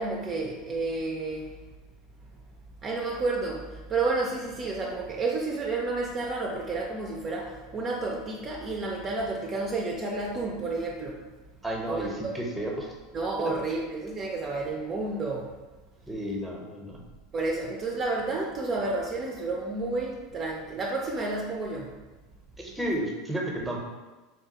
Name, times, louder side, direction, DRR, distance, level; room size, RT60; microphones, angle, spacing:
voice 1, 0.0-1.6 2.2-2.3 2.8-11.3 11.9-12.1 13.1-15.5 17.3-21.9, right 3 dB, 35° right, -1 dB, 0.4 m, -31 dB
voice 2, 11.6-12.9 13.4-13.5 16.1-17.0 22.6-23.8, right 1 dB, 5° right, -1 dB, 0.8 m, -32 dB
3.9 x 2.3 x 2.9 m, 1.2 s
hypercardioid pair, 95°, 0 cm